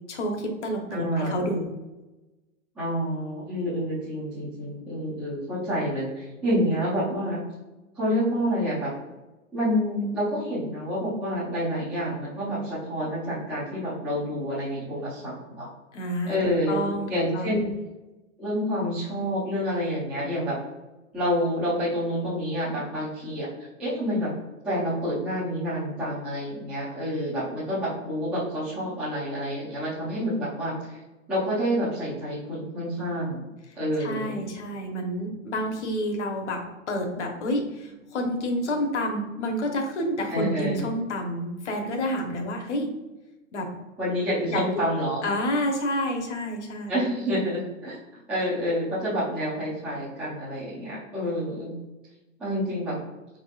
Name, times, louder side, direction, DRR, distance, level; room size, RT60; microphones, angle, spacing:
voice 1, 0.0-1.7 15.9-16.4 16.7-17.6 34.0-42.9 43.5-43.7 44.5-44.6 45.2-46.9, equal, 60° left, 3 dB, 1.1 m, -29 dB
voice 2, 0.9-1.4 2.8-7.4 8.0-8.9 9.5-15.7 16.2-16.8 17.1-17.6 18.4-20.6 21.1-23.5 23.8-24.3 24.6-31.0 31.3-33.4 33.8-34.3 40.3-40.9 44.0-45.2 46.9-51.7 52.4-53.0, equal, 5° right, -12 dB, 0.5 m, -28 dB
4.9 x 3.6 x 2.4 m, 1.1 s
hypercardioid pair, 165°, 39 cm